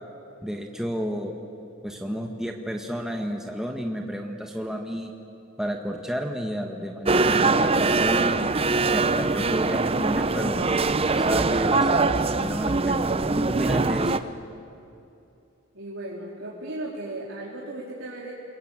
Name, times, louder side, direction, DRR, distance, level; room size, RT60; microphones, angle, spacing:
voice 1, 0.4-1.3 1.8-5.1 5.6-8.4 8.9-12.0 12.4-14.2, equal, 5° right, 1 dB, 1.5 m, -31 dB
sound 1, 7.1-14.2, right 3 dB, 30° right, 0.7 m, -22 dB
voice 2, 15.7-18.3, right 1 dB, 65° right, -5 dB, 3.6 m, -36 dB
28.5 x 21.5 x 9.0 m, 2.7 s
head